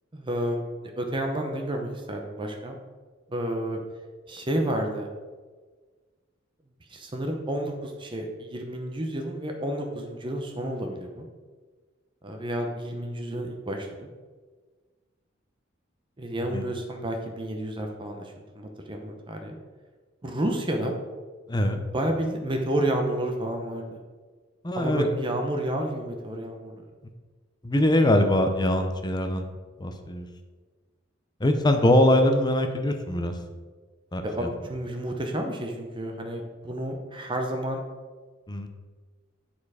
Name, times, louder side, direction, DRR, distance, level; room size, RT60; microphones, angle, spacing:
voice 1, 0.1-2.8 3.3-3.8 4.3-5.1 6.9-11.3 12.2-14.1 16.2-19.6 20.2-21.0 21.9-24.0 24.8-26.8 34.2-37.8, right 1 dB, 25° right, 3 dB, 0.7 m, -30 dB
voice 2, 21.5-21.8 24.6-25.0 27.6-29.5 29.8-30.3 31.4-33.3 34.1-34.5 38.5-38.7, left 1 dB, 20° left, 6 dB, 0.7 m, -22 dB
9.8 x 4.3 x 4.9 m, 1.4 s
head